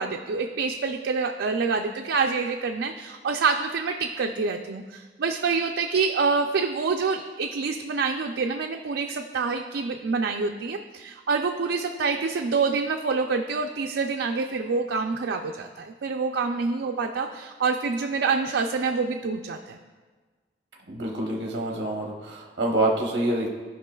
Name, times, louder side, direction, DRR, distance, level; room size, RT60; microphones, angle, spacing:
voice 1, 0.0-19.8, right 4 dB, 85° right, 3 dB, 0.4 m, -27 dB
voice 2, 20.9-23.5, right 1 dB, 70° right, -1 dB, 0.9 m, -26 dB
15.0 x 5.3 x 2.3 m, 1.4 s
head